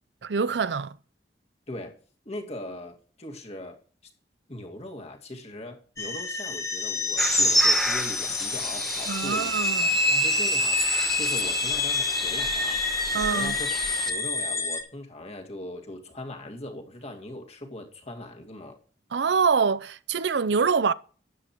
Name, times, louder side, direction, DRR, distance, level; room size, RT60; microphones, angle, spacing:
voice 1, 0.2-1.0 9.1-9.9 13.1-13.5 19.1-20.9, right 5 dB, 75° right, 0.6 m, -25 dB
voice 2, 1.7-2.0 2.3-3.8 4.5-9.7 10.1-12.8 13.1-13.7 14.1-18.8, left 1 dB, 35° left, 2.1 m, -40 dB
sound 1, 6.0-14.8, left 2 dB, 15° left, 1.2 m, -27 dB
sound 2, 7.2-14.1, equal, ahead, 1.1 m, -29 dB
12.5 x 10.0 x 3.1 m
head